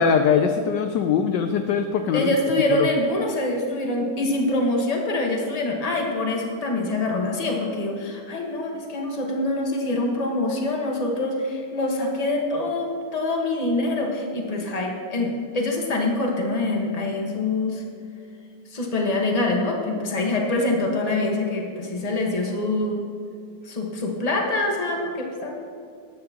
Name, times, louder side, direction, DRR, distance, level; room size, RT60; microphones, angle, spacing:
voice 1, 0.0-2.3 2.8-2.9, left 6 dB, 80° left, 7 dB, 1.0 m, -21 dB
voice 2, 2.1-17.8 18.7-23.0 23.6-25.6, left 2 dB, 20° left, 0 dB, 1.1 m, -25 dB
13.5 x 10.5 x 2.9 m, 2.4 s
omnidirectional pair, 2.4 m